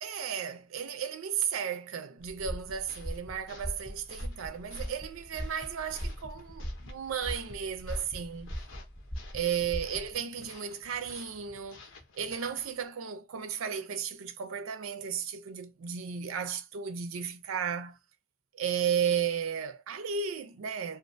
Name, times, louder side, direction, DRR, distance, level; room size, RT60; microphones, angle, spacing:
voice 1, 0.0-8.6 9.3-11.8 12.1-18.0 18.5-21.0, right 7 dB, 90° right, 0.4 m, -34 dB
sound 1, 2.2-10.1, equal, 10° left, 0.4 m, -40 dB
sound 2, 2.7-12.9, left 4 dB, 70° left, 0.7 m, -54 dB
2.4 x 2.3 x 2.5 m
head